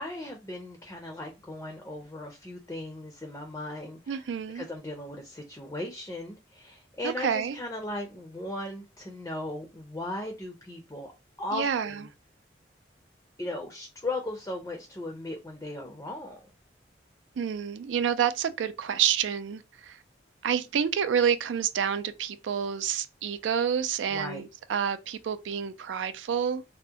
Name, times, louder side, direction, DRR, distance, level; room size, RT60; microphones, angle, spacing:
voice 1, 0.0-4.2 4.5-11.1 11.4-12.1 13.4-16.5 24.1-24.5, left 1 dB, 15° left, 0.4 m, -37 dB
voice 2, 4.1-4.7 7.0-7.6 11.5-12.0 17.4-20.0 20.4-26.6, right 8 dB, 85° right, 0.4 m, -28 dB
3.5 x 2.1 x 2.7 m
head